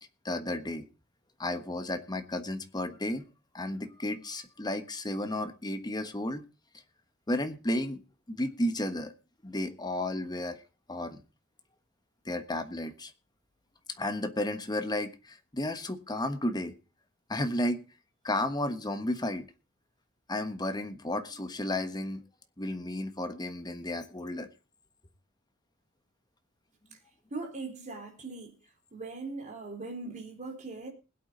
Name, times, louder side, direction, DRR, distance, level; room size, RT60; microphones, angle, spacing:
voice 1, 0.2-0.8 1.4-3.2 3.5-6.4 7.3-8.0 8.3-9.1 9.4-10.6 10.9-11.2 12.2-13.1 14.0-16.7 17.3-17.8 18.2-19.5 20.3-22.2 22.6-24.5, left 1 dB, 20° left, 1.3 m, -33 dB
voice 2, 27.3-28.5 28.9-30.9, right 3 dB, 35° right, 4.2 m, -40 dB
21.0 x 8.5 x 3.9 m
head